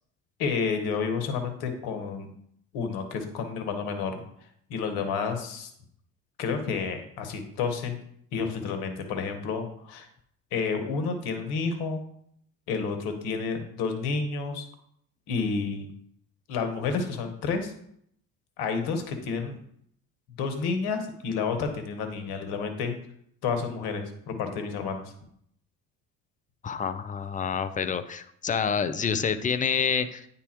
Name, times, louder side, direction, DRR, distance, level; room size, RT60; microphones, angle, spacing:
voice 1, 0.4-2.3 2.7-4.2 4.7-5.7 6.4-8.0 8.3-10.1 10.5-12.0 12.7-14.7 15.3-15.9 16.5-17.7 18.6-19.6 20.4-22.9 23.4-25.1, left 5 dB, 65° left, 7 dB, 1.3 m, -30 dB
voice 2, 26.6-30.3, left 6 dB, 20° left, 11 dB, 0.5 m, -28 dB
9.5 x 3.6 x 3.0 m, 0.69 s
hypercardioid pair, 70°, 42 cm